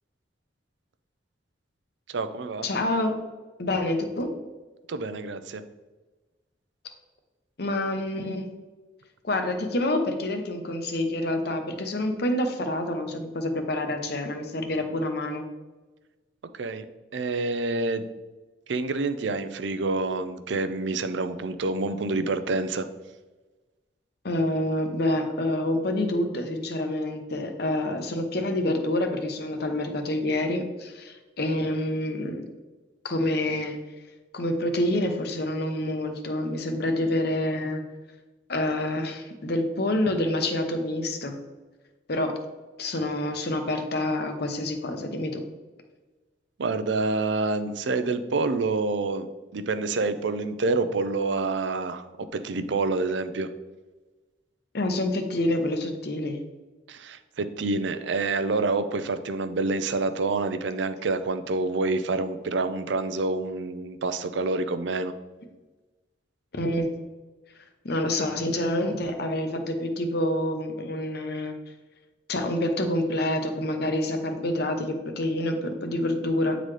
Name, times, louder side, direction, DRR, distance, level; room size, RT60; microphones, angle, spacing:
voice 1, 2.1-2.7 4.9-5.6 16.5-16.8 17.1-18.0 18.7-22.9 46.6-49.3 49.5-53.5 56.9-65.1, right 3 dB, 70° right, 10 dB, 0.5 m, -27 dB
voice 2, 2.6-3.1 3.6-4.3 7.6-8.5 9.2-15.4 24.2-32.5 33.0-33.8 34.3-37.8 38.5-41.4 42.1-42.4 42.8-45.4 54.7-56.4 66.5-66.9 67.8-71.5 72.3-76.6, left 1 dB, 60° left, 6 dB, 0.8 m, -27 dB
8.9 x 3.9 x 3.2 m, 1.2 s
head